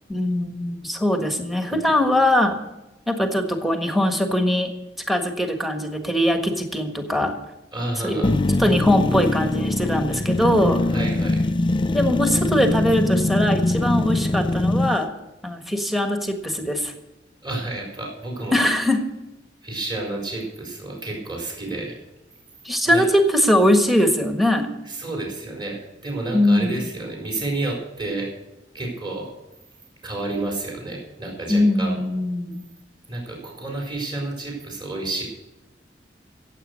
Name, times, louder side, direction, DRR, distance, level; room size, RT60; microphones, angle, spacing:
voice 1, 0.1-2.6 3.1-4.7 5.1-7.4 8.0-8.3 8.6-10.8 11.9-15.1 15.4-16.9 18.5-19.0 22.6-24.7 26.3-26.9 31.5-32.6, left 1 dB, ahead, 5 dB, 1.5 m, -21 dB
voice 2, 7.7-8.4 10.9-11.5 17.4-18.7 19.6-22.0 22.9-23.0 24.9-28.3 28.7-29.3 30.0-32.0 33.1-35.2, right 2 dB, 25° right, 0 dB, 4.3 m, -30 dB
sound 1, 8.2-15.0, left 2 dB, 25° left, 0.4 m, -22 dB
16.0 x 8.2 x 6.4 m, 1.0 s
head